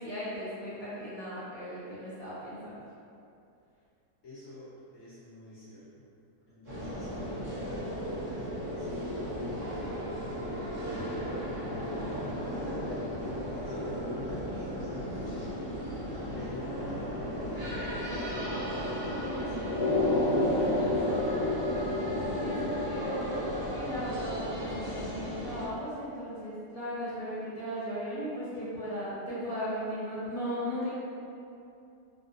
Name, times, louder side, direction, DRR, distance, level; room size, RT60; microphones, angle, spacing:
voice 1, 0.0-2.9 11.8-12.0 19.2-19.6 22.4-23.3 23.7-30.9, equal, 40° left, -12 dB, 0.5 m, -37 dB
voice 2, 4.2-6.1 6.5-10.5 11.6-12.4 12.6-15.5 16.1-18.2 18.8-21.2 22.0-22.7, left 1 dB, 55° left, -10 dB, 1.0 m, -48 dB
sound 1, 6.6-25.6, left 1 dB, 25° right, 1.2 m, -33 dB
3.5 x 2.6 x 2.5 m, 2.6 s
omnidirectional pair, 1.8 m